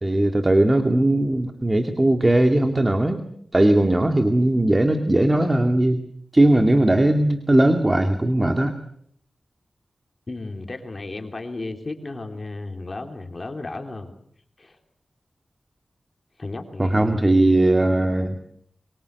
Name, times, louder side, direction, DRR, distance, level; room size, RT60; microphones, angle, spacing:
voice 1, 0.0-3.2 3.5-6.0 6.3-8.7 16.8-18.4, right 1 dB, 25° right, 6 dB, 2.2 m, -19 dB
voice 2, 10.3-14.1 14.6-14.8 16.4-17.2, left 2 dB, 40° left, 5 dB, 3.3 m, -34 dB
25.5 x 24.0 x 8.1 m, 0.68 s
wide cardioid pair, 80°, 0 cm